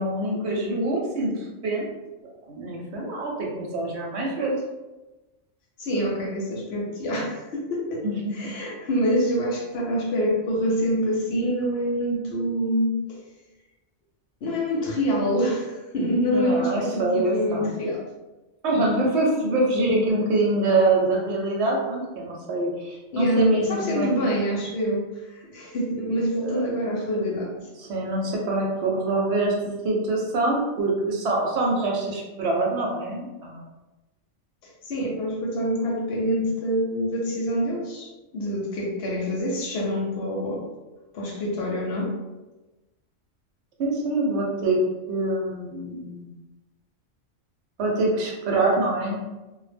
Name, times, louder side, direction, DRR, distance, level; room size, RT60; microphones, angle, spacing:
voice 1, 0.0-1.9 2.5-4.5 8.0-8.4 16.3-17.7 18.6-24.1 26.4-26.9 27.8-29.5 29.8-33.6 43.8-44.8 45.1-46.3 47.8-49.2, right 2 dB, 70° right, -2 dB, 0.8 m, -25 dB
voice 2, 5.8-8.0 8.3-13.2 14.4-18.0 23.1-27.5 34.6-40.7 41.1-42.1, equal, 65° left, -1 dB, 0.7 m, -26 dB
2.1 x 2.0 x 3.2 m, 1.1 s
omnidirectional pair, 1.3 m